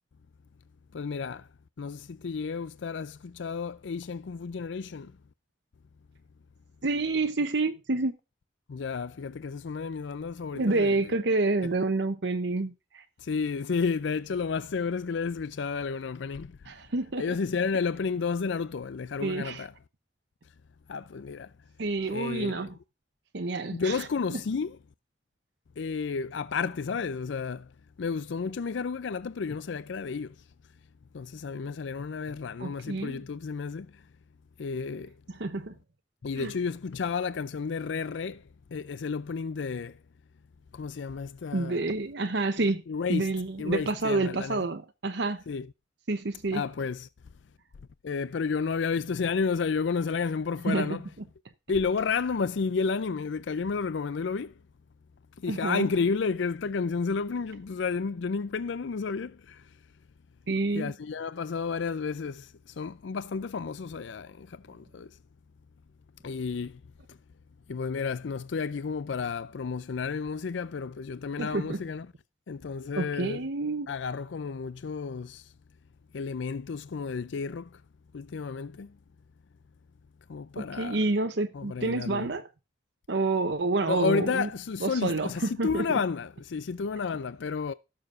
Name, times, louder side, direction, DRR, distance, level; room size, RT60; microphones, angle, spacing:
voice 1, 0.9-1.5 1.8-5.1 8.7-11.1 13.2-16.6 17.2-19.7 20.9-21.5 22.1-22.7 23.7-24.8 25.8-27.7 28.0-30.4 31.1-34.0 34.6-35.1 36.2-40.0 40.7-41.9 42.6-43.3 43.6-44.6 45.5-45.7 46.5-47.1 48.0-51.1 51.7-54.6 55.4-59.7 60.7-65.2 66.2-66.8 67.1-67.2 67.7-72.1 72.5-73.4 73.9-75.5 76.1-77.8 78.1-79.0 80.3-81.0 81.5-82.3 83.8-87.7, left 5 dB, 70° left, 0.4 m, -31 dB
voice 2, 6.8-8.1 10.5-13.0 16.7-17.4 19.2-19.7 21.8-22.8 23.3-24.0 24.3-24.4 32.6-33.2 35.3-35.7 36.4-36.5 41.5-42.8 43.1-45.4 46.1-46.6 50.7-50.9 55.5-55.9 60.5-60.9 71.4-71.8 73.0-73.9 80.6-82.5 83.1-84.5 84.8-86.0, right 3 dB, 60° right, 0.8 m, -28 dB
17.0 x 6.8 x 2.5 m
head